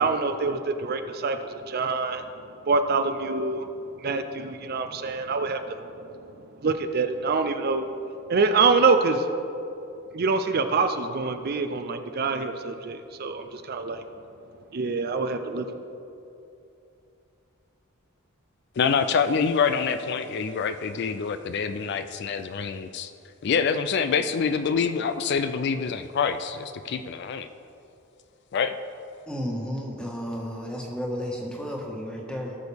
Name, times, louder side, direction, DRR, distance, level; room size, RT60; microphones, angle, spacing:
voice 1, 0.0-2.2 2.7-3.7 4.0-5.8 6.6-7.8 8.3-9.3 10.1-14.0 14.7-15.7, right 4 dB, 45° right, 8 dB, 0.5 m, -25 dB
voice 2, 18.8-23.1 23.4-27.5 28.5-28.8, left 6 dB, 55° left, 10 dB, 0.4 m, -26 dB
voice 3, 29.3-32.6, equal, 5° left, -2 dB, 1.5 m, -32 dB
17.5 x 6.3 x 3.5 m, 2.8 s
head